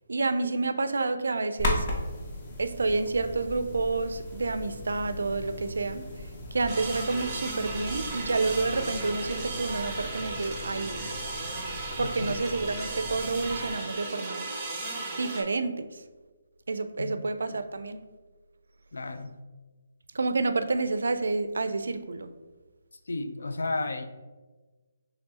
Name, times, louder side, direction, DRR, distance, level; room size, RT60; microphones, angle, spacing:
voice 1, 0.1-1.9 2.6-6.1 6.5-11.1 12.0-14.5 15.2-15.9 16.7-18.0 20.1-22.3, right 3 dB, 85° right, 11 dB, 0.3 m, -29 dB
sound 1, 1.6-13.7, left 1 dB, 30° left, 0.7 m, -38 dB
sound 2, 6.7-15.4, right 3 dB, 15° right, 0.6 m, -36 dB
voice 2, 12.0-12.4 17.0-17.3 18.9-19.4 23.1-24.0, left 2 dB, 90° left, 8 dB, 0.4 m, -33 dB
4.6 x 3.3 x 2.8 m, 1.3 s
hypercardioid pair, 170°, 0 cm